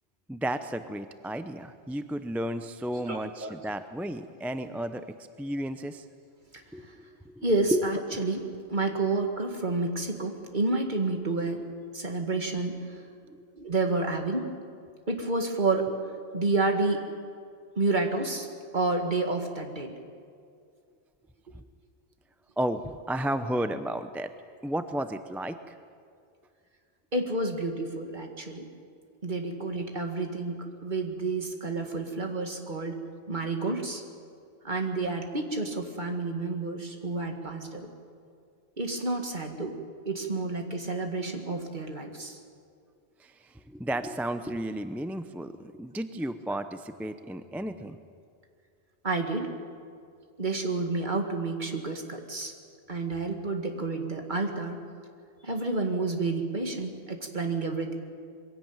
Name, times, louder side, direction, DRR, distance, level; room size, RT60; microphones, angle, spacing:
voice 1, 0.3-6.1 6.7-6.9 7.2-7.8 8.1-8.2 13.3-13.5 21.5-21.6 22.6-24.3 24.6-25.8 43.2-48.0, right 1 dB, ahead, 10 dB, 0.5 m, -33 dB
voice 2, 3.1-3.5 6.5-7.0 7.4-8.4 8.7-11.6 11.9-13.0 13.6-14.5 15.1-16.0 16.3-17.0 17.8-18.5 18.7-19.9 27.1-28.7 29.2-33.0 33.3-34.0 34.6-37.9 38.8-39.8 40.1-42.4 49.0-49.5 50.4-52.5 52.9-54.8 55.4-57.9, right 3 dB, 50° right, 4 dB, 2.1 m, -30 dB
22.5 x 16.5 x 8.9 m, 2.3 s
omnidirectional pair, 1.1 m